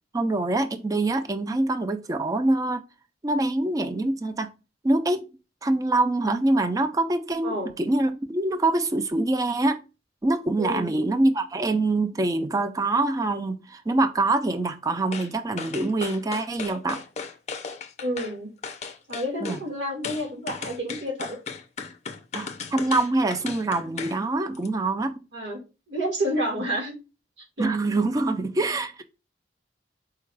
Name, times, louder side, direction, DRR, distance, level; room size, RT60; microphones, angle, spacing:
voice 1, 0.1-2.9 3.2-4.5 4.8-5.3 5.6-9.8 10.2-17.0 19.4-19.6 22.3-25.2 27.6-29.0, right 2 dB, 20° right, 0.3 m, -25 dB
voice 2, 10.6-10.9 18.0-18.5 19.1-21.4 25.3-25.6 25.9-26.9 27.6-27.7, equal, 80° right, 1.7 m, -29 dB
sound 1, 15.1-15.3 15.6-18.3 18.6-19.6 20.0-24.2 24.5-24.7, left 5 dB, 40° left, 0.5 m, -36 dB
4.5 x 2.3 x 4.6 m
head